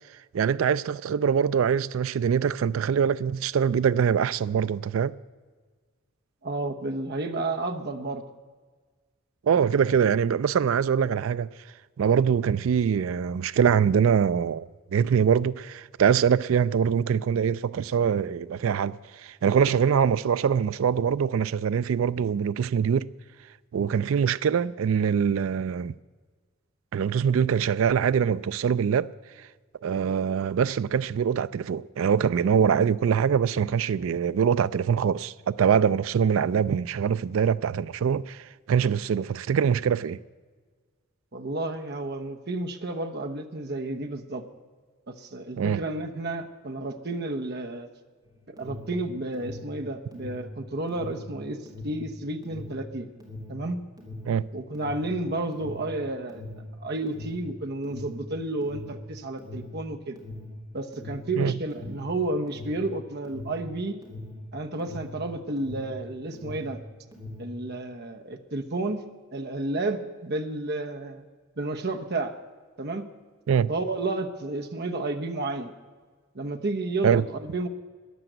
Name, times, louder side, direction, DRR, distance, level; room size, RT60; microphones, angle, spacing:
voice 1, 0.3-5.1 9.4-11.5 12.0-14.7 14.9-23.1 23.7-25.9 26.9-29.1 29.8-40.2 45.6-45.8 54.2-54.5 61.4-61.5 73.5-73.7 77.0-77.2, right 7 dB, 75° right, 0.4 m, -23 dB
voice 2, 6.4-8.3 41.3-44.4 45.1-47.9 48.5-51.6 51.8-53.1 53.5-53.8 54.5-56.4 56.8-60.2 60.7-64.0 64.5-66.8 67.4-69.0 69.3-71.2 71.6-72.3 72.8-73.0 73.7-75.7 76.3-77.7, right 2 dB, 50° right, 0.9 m, -31 dB
Alarm, 48.2-66.0 66.3-67.6, left 2 dB, 20° right, 2.9 m, -41 dB
13.5 x 10.5 x 7.9 m
head